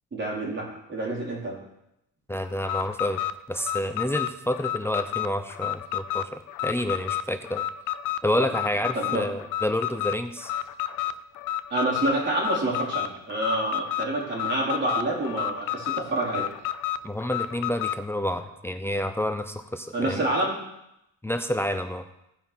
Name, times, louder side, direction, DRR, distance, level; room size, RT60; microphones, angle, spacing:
voice 1, 0.1-1.6 8.9-9.2 11.7-16.5 19.9-20.6, right 1 dB, 40° right, -4 dB, 4.3 m, -27 dB
voice 2, 2.3-3.2 3.5-7.6 8.2-10.5 17.0-20.2 21.2-22.0, left 1 dB, 10° left, 8 dB, 0.6 m, -29 dB
Alarm, 2.6-18.0, left 12 dB, 85° left, 0.5 m, -31 dB
15.5 x 5.4 x 4.5 m, 0.83 s
cardioid pair, 90°, 30 cm